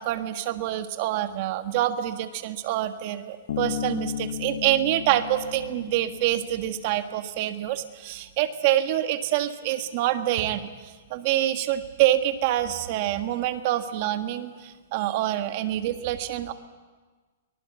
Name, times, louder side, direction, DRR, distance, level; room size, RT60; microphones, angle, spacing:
voice 1, 0.0-16.5, right 13 dB, 45° right, 8 dB, 1.6 m, -26 dB
Bass guitar, 3.5-7.0, left 8 dB, 70° left, 1.5 m, -34 dB
24.0 x 19.0 x 8.2 m, 1.4 s
hypercardioid pair, 155°, 0 cm